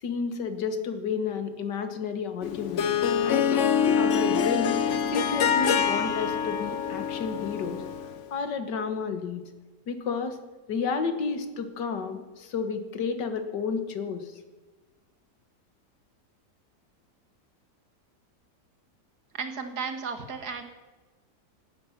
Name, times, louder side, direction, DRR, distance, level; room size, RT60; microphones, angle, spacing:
voice 1, 0.0-2.9 3.2-4.8 5.1-7.8 8.3-9.4 9.9-10.4 10.7-14.3, left 5 dB, 85° left, 8 dB, 2.0 m, -31 dB
Harp, 2.4-8.2, left 7 dB, 55° left, 0.9 m, -25 dB
voice 2, 19.3-20.6, right 5 dB, 65° right, 7 dB, 2.1 m, -34 dB
17.0 x 12.5 x 5.9 m, 1.3 s
omnidirectional pair, 1.8 m